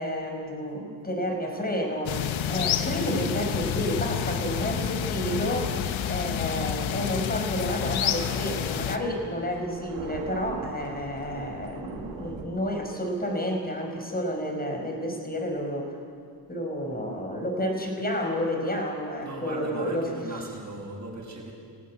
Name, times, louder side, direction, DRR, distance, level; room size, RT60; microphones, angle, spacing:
voice 1, 0.0-5.7 6.1-15.9 16.5-20.1, equal, 20° left, 3 dB, 5.0 m, -30 dB
sound 1, 2.1-9.0, left 9 dB, 85° left, 1.1 m, -29 dB
Thunder, 7.5-12.4, right 5 dB, 85° right, 2.1 m, -41 dB
voice 2, 19.2-21.5, right 2 dB, 40° right, -1 dB, 6.6 m, -37 dB
19.5 x 16.0 x 9.6 m, 2.2 s
cardioid pair, 100°, 45 cm